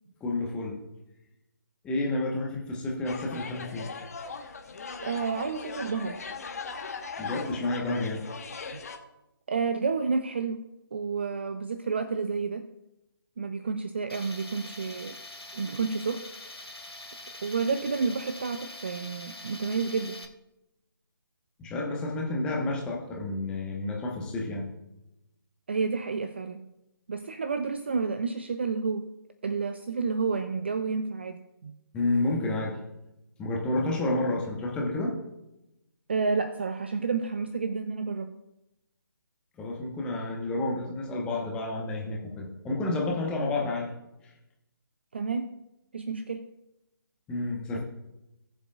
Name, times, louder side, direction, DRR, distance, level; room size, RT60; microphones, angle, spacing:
voice 1, 0.2-0.8 1.8-3.9 7.2-8.2 21.6-24.7 31.9-32.8 33.4-35.1 39.6-43.9 47.3-47.8, left 2 dB, 5° left, -2 dB, 1.2 m, -30 dB
sound 1, 3.0-9.0, left 5 dB, 40° left, 1.1 m, -39 dB
voice 2, 5.0-6.2 8.7-8.8 9.5-12.7 13.4-15.2 15.5-16.2 17.4-20.3 25.7-26.7 27.1-29.1 29.4-31.8 36.1-38.4 45.1-45.5 45.9-46.5 47.7-47.8, right 5 dB, 25° right, 9 dB, 0.4 m, -30 dB
Tools, 14.1-20.2, left 2 dB, 80° left, 1.4 m, -44 dB
18.5 x 7.3 x 2.4 m, 0.91 s
figure-of-eight pair, 150°, 13 cm